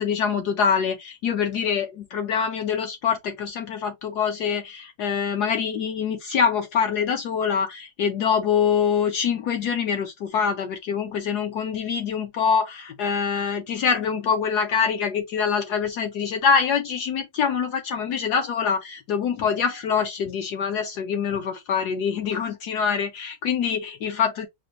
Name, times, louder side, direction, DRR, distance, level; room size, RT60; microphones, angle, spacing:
voice 1, 0.0-24.5, left 6 dB, 70° left, 1.0 m, -25 dB
5.0 x 2.1 x 2.9 m
omnidirectional pair, 2.1 m